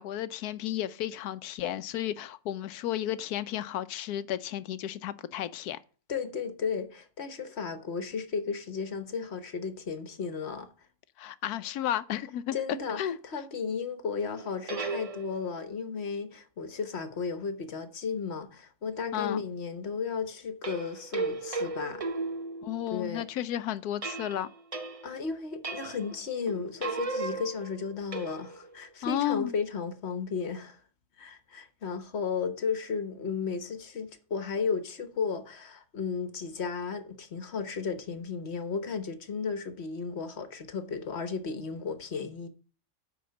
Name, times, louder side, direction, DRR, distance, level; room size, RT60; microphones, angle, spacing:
voice 1, 0.0-5.8 11.2-12.6 13.0-13.2 19.1-19.4 22.6-24.5 29.0-29.5, left 11 dB, 85° left, 1.2 m, -33 dB
voice 2, 6.1-10.7 12.5-22.0 22.9-23.3 25.0-30.8 31.2-42.5, left 5 dB, 50° left, 1.2 m, -34 dB
sound 1, 14.3-15.7 20.6-23.1 24.0-25.3 25.6-26.2 26.5-28.7, right 3 dB, 35° right, 0.6 m, -36 dB
10.0 x 4.4 x 7.7 m
omnidirectional pair, 1.6 m